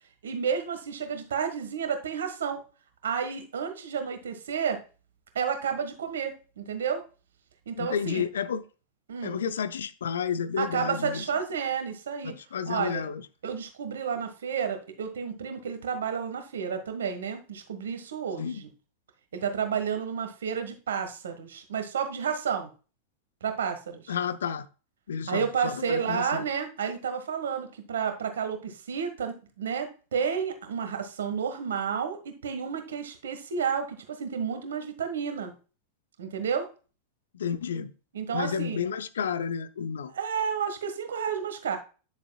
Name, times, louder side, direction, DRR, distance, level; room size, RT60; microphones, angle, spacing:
voice 1, 0.2-2.6 3.0-4.8 5.3-7.0 7.7-8.3 9.1-9.4 10.6-12.4 12.7-13.1 13.4-18.7 19.3-22.7 23.4-24.1 25.3-35.5 36.2-36.7 38.1-38.8 40.1-41.8, right 7 dB, 65° right, 1.5 m, -31 dB
voice 2, 7.8-8.6 9.2-11.2 12.2-13.2 18.4-18.6 24.1-24.7 25.1-26.5 37.3-37.9 38.3-40.1, left 7 dB, 65° left, 0.6 m, -31 dB
10.0 x 6.9 x 2.3 m
figure-of-eight pair, 90°, 0 cm